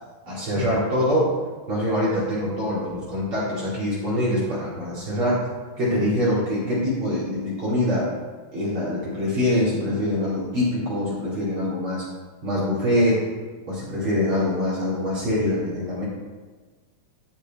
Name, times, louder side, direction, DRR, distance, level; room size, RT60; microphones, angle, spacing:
voice 1, 0.2-1.3 1.7-5.5 5.8-8.1 8.5-12.0 12.4-13.2 13.7-16.0, left 1 dB, 40° right, -8 dB, 3.2 m, -24 dB
14.0 x 5.0 x 4.2 m, 1.3 s
omnidirectional pair, 3.7 m